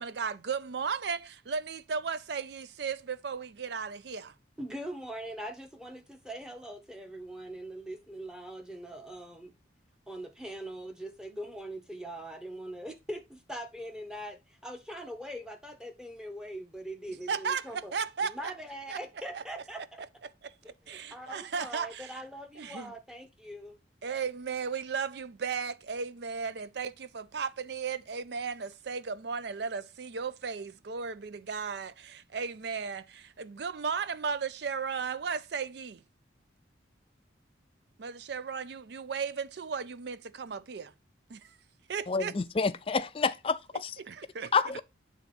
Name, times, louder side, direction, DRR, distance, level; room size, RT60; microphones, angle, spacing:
voice 1, 0.0-4.3 17.3-18.5 18.9-19.0 19.3-19.4 20.4-20.5 20.9-22.2 22.6-22.9 24.0-36.0 38.0-40.9 41.3-41.5 41.9-42.3 44.0-44.5, right 5 dB, 60° right, 0.4 m, -35 dB
voice 2, 4.6-9.5 10.1-17.9 18.2-20.0 20.6-23.8, right 1 dB, 5° right, 0.9 m, -42 dB
voice 3, 42.1-43.9 44.5-44.8, left 4 dB, 30° left, 0.4 m, -28 dB
8.2 x 3.5 x 4.2 m
head